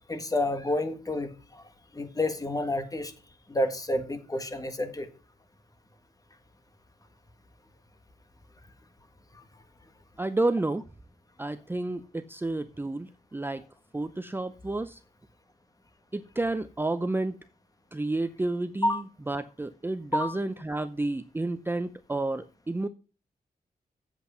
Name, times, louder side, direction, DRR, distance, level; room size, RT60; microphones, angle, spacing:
voice 1, 0.1-1.6 1.9-3.1 3.5-5.1 18.8-19.0 20.1-20.4, left 1 dB, 20° left, 1.6 m, -29 dB
voice 2, 10.2-10.8 11.4-13.6 13.9-15.0 16.1-17.4 17.9-22.9, right 2 dB, 15° right, 0.5 m, -30 dB
8.1 x 7.9 x 5.6 m
cardioid pair, 95°, 16 cm